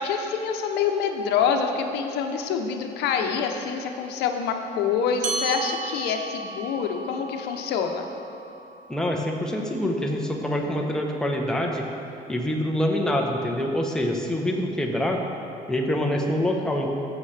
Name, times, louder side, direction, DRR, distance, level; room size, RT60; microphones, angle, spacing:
voice 1, 0.0-8.0, left 6 dB, 80° left, 4 dB, 0.8 m, -26 dB
sound 1, 5.2-10.0, right 3 dB, 50° right, 1.0 m, -35 dB
voice 2, 8.9-11.9 12.3-15.2 15.7-16.9, left 1 dB, 5° left, 0 dB, 0.9 m, -25 dB
14.0 x 7.4 x 3.3 m, 2.8 s
cardioid pair, 110°, 17 cm